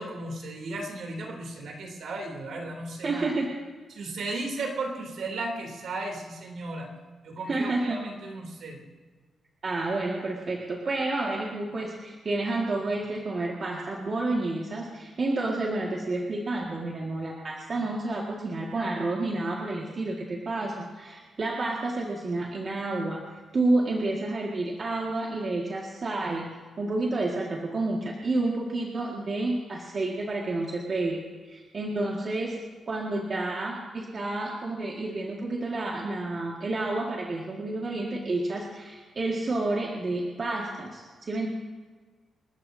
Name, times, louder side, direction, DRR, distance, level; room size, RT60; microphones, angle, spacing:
voice 1, 0.0-3.3 3.9-6.9 7.2-8.8, right 2 dB, 70° right, 1 dB, 3.2 m, -35 dB
voice 2, 3.0-3.6 7.5-8.0 9.6-23.2 23.5-32.6 32.9-41.5, right 2 dB, 40° right, -2 dB, 1.9 m, -30 dB
28.5 x 14.0 x 2.8 m, 1.4 s
wide cardioid pair, 135°, 0 cm